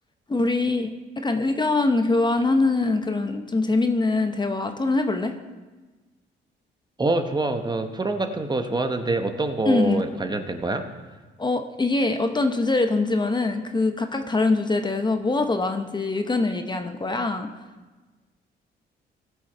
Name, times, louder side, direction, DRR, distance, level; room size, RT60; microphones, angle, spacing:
voice 1, 0.3-5.3 9.6-10.0 11.4-17.5, left 3 dB, 20° left, 6 dB, 0.9 m, -23 dB
voice 2, 7.0-10.8, right 2 dB, 20° right, 6 dB, 0.9 m, -25 dB
17.0 x 6.3 x 4.5 m, 1.3 s
cardioid pair, 90°, 20 cm